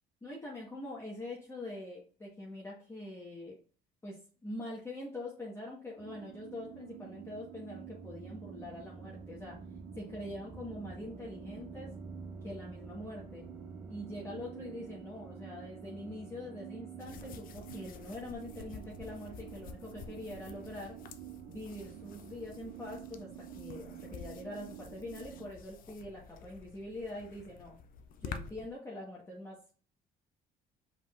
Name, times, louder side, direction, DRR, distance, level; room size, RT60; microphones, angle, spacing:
voice 1, 0.2-3.6 4.0-9.6 9.9-11.9 12.4-13.5 13.9-21.0 21.5-23.3 23.6-27.8 28.2-29.6, left 1 dB, 15° left, -4 dB, 1.2 m, -44 dB
sound 1, 6.0-25.5, right 14 dB, 80° right, 0.4 m, -50 dB
sound 2, 6.7-23.5, right 2 dB, 10° right, 0.4 m, -51 dB
sound 3, 17.0-28.7, left 6 dB, 55° left, 0.6 m, -50 dB
4.8 x 3.8 x 2.4 m, 0.41 s
cardioid pair, 110°, 17 cm